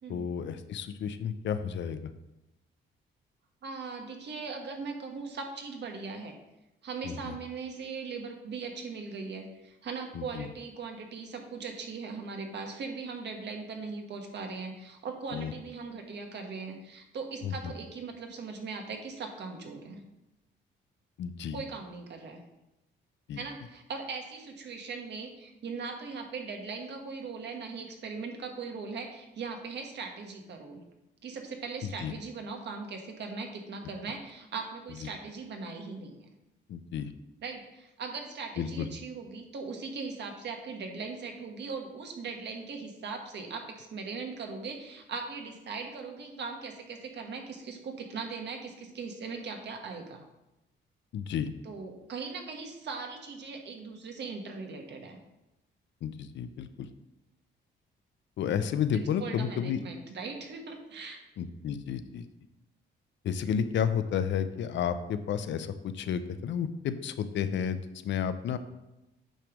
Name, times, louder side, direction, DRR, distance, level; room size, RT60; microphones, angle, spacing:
voice 1, 0.1-2.1 7.0-7.4 10.1-10.5 15.3-15.5 17.4-17.7 21.2-21.6 23.3-23.4 31.8-32.1 36.7-37.1 38.6-38.9 51.1-51.5 56.0-56.9 58.4-59.8 61.4-62.3 63.2-68.6, left 8 dB, 65° left, 11 dB, 0.6 m, -32 dB
voice 2, 3.6-6.3 6.8-20.0 21.5-22.4 23.3-30.8 31.2-36.2 37.4-50.2 51.6-55.2 58.9-61.2, right 4 dB, 60° right, 3 dB, 1.5 m, -39 dB
9.0 x 3.4 x 6.1 m, 0.94 s
cardioid pair, 90°, 20 cm